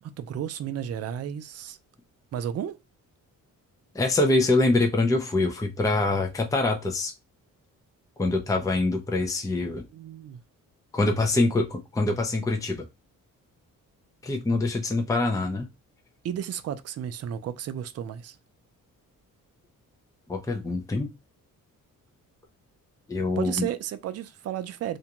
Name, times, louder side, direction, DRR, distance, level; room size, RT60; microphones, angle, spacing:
voice 1, 0.0-1.8 2.3-2.8 9.8-10.4 16.2-18.4 23.4-25.0, right 10 dB, 50° right, 0.4 m, -33 dB
voice 2, 3.9-7.1 8.2-9.8 10.9-12.8 14.2-15.7 20.3-21.1 23.1-23.7, left 2 dB, 10° left, 0.5 m, -24 dB
2.5 x 2.1 x 2.9 m
cardioid pair, 90°, 34 cm